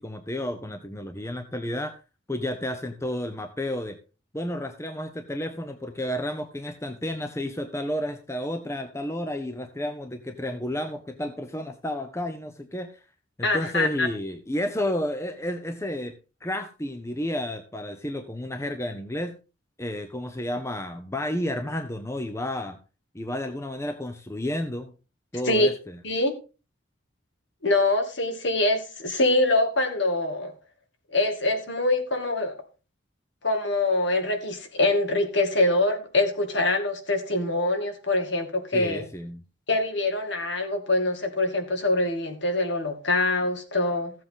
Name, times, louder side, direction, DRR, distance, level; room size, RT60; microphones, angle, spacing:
voice 1, 0.0-2.0 2.3-4.0 4.3-13.0 13.4-16.1 16.4-19.4 19.8-22.8 23.1-24.9 25.3-26.0 38.7-39.4, left 1 dB, 15° left, 0.8 m, -31 dB
voice 2, 13.4-14.1 25.5-25.7 26.0-26.3 27.6-30.5 31.1-32.6 33.4-39.0 39.7-44.1, left 2 dB, 60° left, 2.3 m, -24 dB
15.0 x 7.7 x 3.8 m
head